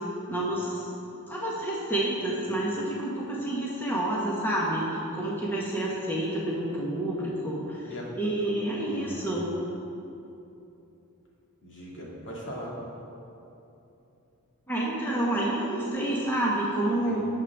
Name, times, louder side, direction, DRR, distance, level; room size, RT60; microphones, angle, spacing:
voice 1, 0.3-0.9 1.3-9.5 14.7-17.2, right 1 dB, 10° left, -6 dB, 1.4 m, -29 dB
voice 2, 8.9-9.3 11.6-12.8 17.0-17.2, equal, 55° left, -5 dB, 2.6 m, -40 dB
17.5 x 7.7 x 3.6 m, 2.8 s
head